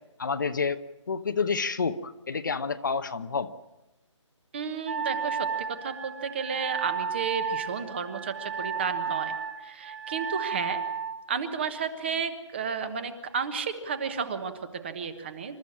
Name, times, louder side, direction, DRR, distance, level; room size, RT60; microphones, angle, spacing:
voice 1, 0.2-3.5, left 5 dB, 40° left, 10 dB, 0.9 m, -29 dB
voice 2, 4.5-5.5 5.8-9.3 9.6-10.8 11.3-15.6, right 6 dB, 20° right, 10 dB, 1.2 m, -32 dB
Wind instrument woodwind instrument, 4.9-11.2, right 6 dB, 40° right, 1.9 m, -33 dB
27.0 x 13.5 x 8.7 m, 0.98 s
hypercardioid pair, 175°, 16 cm